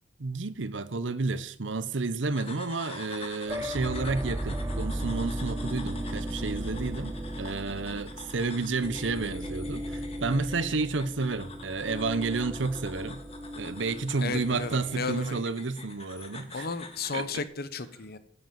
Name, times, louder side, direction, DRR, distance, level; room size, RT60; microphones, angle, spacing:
voice 1, 0.2-13.2 13.6-16.7 17.1-17.4, right 3 dB, 85° right, 0.8 m, -31 dB
sound 1, 2.4-17.3, left 4 dB, 35° left, 1.8 m, -47 dB
sound 2, 3.5-15.4, right 1 dB, 15° right, 0.5 m, -36 dB
voice 2, 14.2-15.4 16.5-18.2, left 4 dB, 55° left, 1.0 m, -34 dB
10.5 x 8.0 x 7.5 m
head